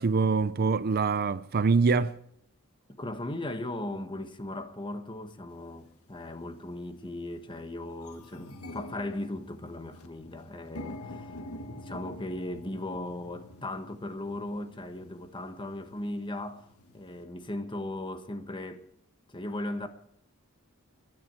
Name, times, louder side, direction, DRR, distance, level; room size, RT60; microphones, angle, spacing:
voice 1, 0.0-2.2, right 4 dB, 45° right, 0.5 m, -24 dB
voice 2, 3.0-16.7 16.9-18.9 19.3-19.9, left 1 dB, 20° left, 1.4 m, -37 dB
sound 1, 5.7-5.8 6.5-6.8 7.2-7.3 7.5-17.2, left 1 dB, 85° left, 1.5 m, -46 dB
20.5 x 11.5 x 4.6 m
head